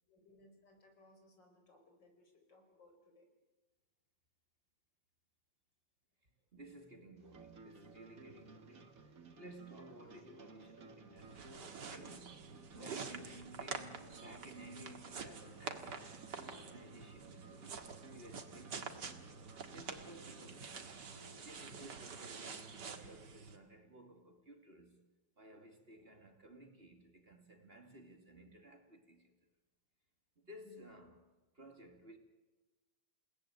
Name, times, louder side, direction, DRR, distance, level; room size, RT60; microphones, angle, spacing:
voice 1, 0.1-3.3 12.7-13.7 30.6-30.9, left 1 dB, 75° left, 5.7 m, -61 dB
voice 2, 6.5-11.6 11.9-19.1 19.4-21.0 21.4-25.0 25.4-29.3 30.4-31.2 31.5-32.2, right 1 dB, 30° right, 2.6 m, -56 dB
sound 1, 7.2-21.0, right 3 dB, 50° right, 2.1 m, -58 dB
sound 2, 11.2-23.6, right 5 dB, 70° right, 2.4 m, -48 dB
sound 3, 13.9-17.9 18.7-22.6, equal, 15° right, 3.1 m, -64 dB
29.0 x 18.5 x 9.2 m
omnidirectional pair, 2.0 m